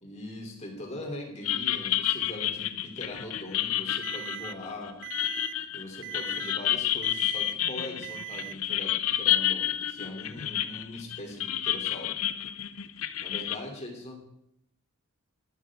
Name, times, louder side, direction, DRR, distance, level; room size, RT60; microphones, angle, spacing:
voice 1, 0.0-5.0 5.7-12.2 13.2-14.2, left 1 dB, 30° left, 0 dB, 3.1 m, -41 dB
sound 1, 1.4-13.6, left 12 dB, 85° left, 0.7 m, -30 dB
Alarm, 4.0-4.5 5.0-5.5 6.0-6.5 7.0-7.5 8.0-8.5, right 23 dB, 55° right, 0.5 m, -40 dB
12.5 x 12.0 x 3.7 m, 0.74 s
head